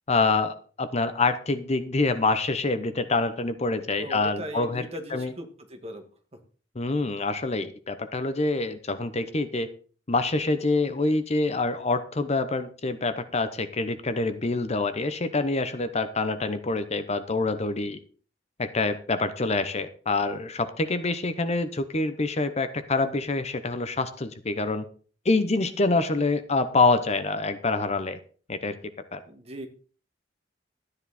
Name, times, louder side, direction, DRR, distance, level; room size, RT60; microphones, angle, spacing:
voice 1, 0.1-5.3 6.7-9.7 10.1-18.0 18.6-24.9 25.2-28.2 28.5-28.8 29.1-29.2, left 3 dB, 35° left, 11 dB, 0.9 m, -26 dB
voice 2, 4.0-6.0 29.3-29.7, equal, 35° right, 5 dB, 2.0 m, -38 dB
13.0 x 9.8 x 4.2 m, 0.40 s
head